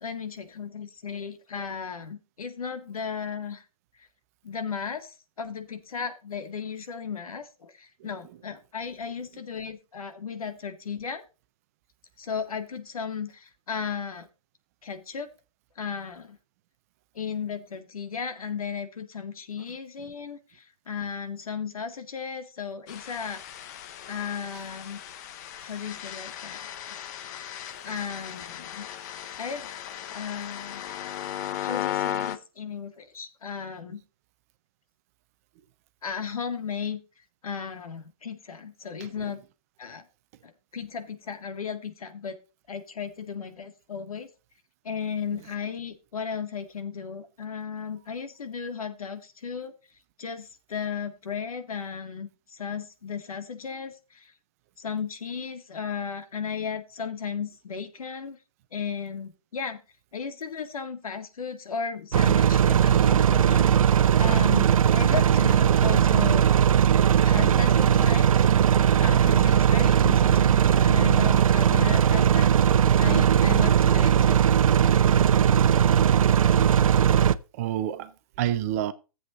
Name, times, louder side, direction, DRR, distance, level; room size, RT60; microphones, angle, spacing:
voice 1, 0.0-3.6 4.0-4.1 4.4-11.2 12.2-14.3 14.8-15.3 15.8-16.4 17.1-23.7 24.1-25.0 25.6-27.0 27.8-28.9 29.4-29.7 30.1-30.8 31.6-34.0 36.0-37.0 37.4-39.4 39.8-40.0 40.4-42.4 42.7-44.3 44.8-49.7 50.2-54.3 54.8-58.4 58.7-59.8 60.1-66.5 67.2-68.5 69.0-74.4, left 6 dB, 75° left, 2.0 m, -35 dB
sound 1, 22.9-32.4, left 11 dB, 30° left, 0.7 m, -36 dB
sound 2, 62.1-77.4, right 9 dB, 70° right, 0.7 m, -19 dB
voice 2, 77.5-78.9, right 12 dB, 25° right, 0.6 m, -29 dB
14.5 x 7.9 x 2.5 m
hypercardioid pair, 155°, 18 cm